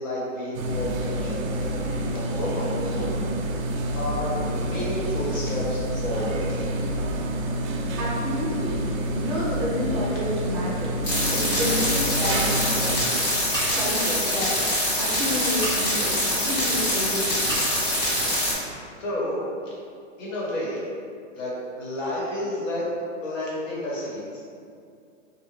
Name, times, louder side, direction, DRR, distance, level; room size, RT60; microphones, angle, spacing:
voice 1, 0.0-3.1 3.9-6.6 10.8-10.9 19.0-19.4 20.2-20.8 21.3-22.9 23.2-24.3, left 1 dB, 75° left, -6 dB, 1.2 m, -31 dB
sound 1, 0.5-13.1, right 1 dB, 90° right, 0.5 m, -28 dB
voice 2, 8.0-8.8 9.1-10.9 11.3-13.1 13.7-17.5, left 1 dB, 25° right, -9 dB, 0.3 m, -30 dB
sound 2, 11.0-18.5, left 1 dB, 35° left, 1.0 m, -24 dB
Scissors, 13.5-14.0 15.5-15.8 17.4-17.7, right 1 dB, 10° left, 0.8 m, -31 dB
2.6 x 2.1 x 3.1 m, 2.3 s
hypercardioid pair, 165°, 39 cm